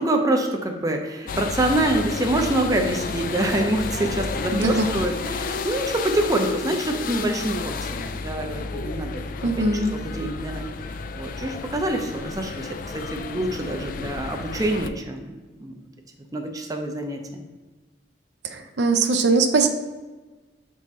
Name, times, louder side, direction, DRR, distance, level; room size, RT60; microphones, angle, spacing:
voice 1, 0.0-9.2 9.9-10.7 11.1-15.3 15.6-15.7 16.3-17.4, right 1 dB, 20° right, 3 dB, 0.6 m, -26 dB
sound 1, 1.3-14.9, left 4 dB, 50° left, 0.3 m, -31 dB
voice 2, 4.5-4.9 9.4-9.9 18.4-19.7, right 3 dB, 75° right, 6 dB, 0.6 m, -21 dB
6.7 x 4.1 x 3.6 m, 1.3 s
head